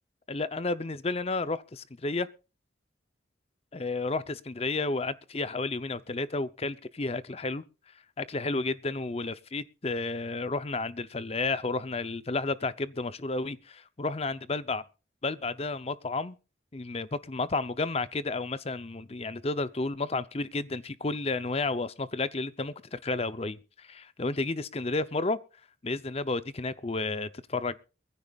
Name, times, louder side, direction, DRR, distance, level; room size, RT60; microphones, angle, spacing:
voice 1, 0.3-2.3 3.7-7.6 8.2-14.8 15.2-16.4 16.7-25.4 25.8-27.8, left 3 dB, 30° left, 0.6 m, -32 dB
22.5 x 15.0 x 2.4 m
head